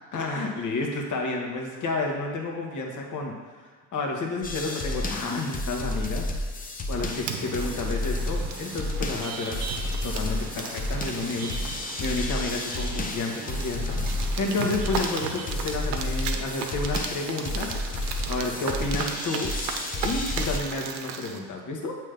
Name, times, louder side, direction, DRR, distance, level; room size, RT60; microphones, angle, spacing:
voice 1, 0.1-3.3 3.9-6.3 6.9-9.7 10.0-17.8 18.3-19.5 20.0-21.9, left 3 dB, 35° left, 1 dB, 1.4 m, -31 dB
sound 1, 4.4-20.6, left 2 dB, 15° left, 0.7 m, -31 dB
sound 2, 6.9-21.4, right 6 dB, 65° right, 0.9 m, -36 dB
7.4 x 3.3 x 5.2 m, 1.5 s
hypercardioid pair, 80°, 49 cm